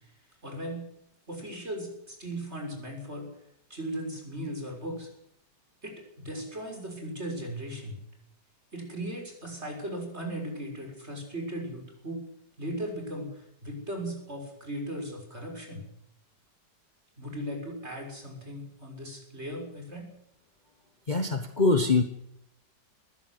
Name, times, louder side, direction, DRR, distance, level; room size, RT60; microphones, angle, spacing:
voice 1, 0.4-0.8 1.3-3.3 3.7-5.1 5.8-8.0 8.7-12.2 12.6-15.8 17.2-20.0, right 1 dB, 40° right, 3 dB, 6.8 m, -37 dB
voice 2, 21.1-22.0, left 3 dB, 30° left, 7 dB, 1.3 m, -23 dB
21.0 x 15.5 x 8.2 m, 0.76 s
omnidirectional pair, 1.8 m